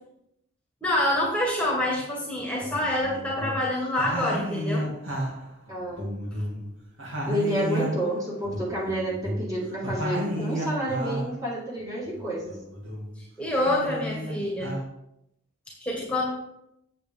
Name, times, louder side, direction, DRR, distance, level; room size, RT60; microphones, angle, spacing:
voice 1, 0.8-4.9 13.4-14.7 15.8-16.3, left 1 dB, 5° left, -3 dB, 1.7 m, -26 dB
sound 1, 1.9-2.0 2.6-3.7 4.0-6.7 7.0-11.4 11.8-13.2 13.5-14.8, equal, 70° right, 2.6 m, -32 dB
voice 2, 5.7-6.2 7.3-12.6, right 1 dB, 15° right, -5 dB, 2.0 m, -30 dB
8.4 x 7.6 x 3.6 m, 0.79 s
head